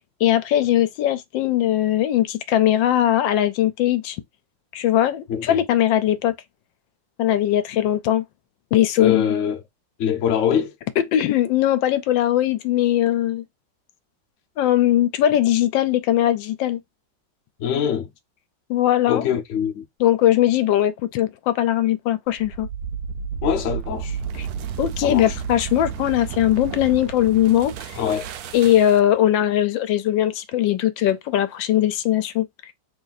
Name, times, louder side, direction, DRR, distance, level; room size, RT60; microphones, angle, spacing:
voice 1, 0.2-4.2 4.7-6.3 7.2-8.2 8.7-9.2 11.0-13.4 14.6-16.8 18.7-19.2 20.0-22.7 24.3-24.5 24.8-28.0 28.5-32.7, left 12 dB, 80° left, 1.3 m, -20 dB
voice 2, 9.0-9.6 10.0-10.7 17.6-18.1 19.1-19.8 23.4-24.2 25.0-25.3 28.0-28.3, left 8 dB, 55° left, 0.9 m, -23 dB
sound 1, 22.3-29.2, right 7 dB, 70° right, 0.9 m, -32 dB
3.2 x 2.6 x 4.0 m
omnidirectional pair, 2.0 m